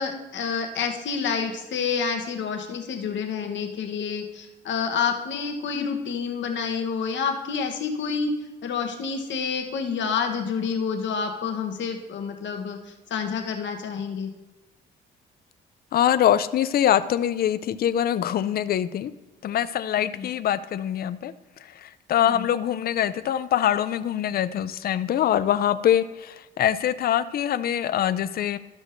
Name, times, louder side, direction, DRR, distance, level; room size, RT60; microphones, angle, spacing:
voice 1, 0.0-8.3 8.6-14.3 20.0-20.3 22.2-22.5, left 6 dB, 65° left, 4 dB, 1.1 m, -28 dB
voice 2, 15.9-19.1 19.4-21.3 21.8-28.6, left 10 dB, 50° left, 14 dB, 0.4 m, -24 dB
13.0 x 6.1 x 2.6 m, 1.1 s
cardioid pair, 90°, 20 cm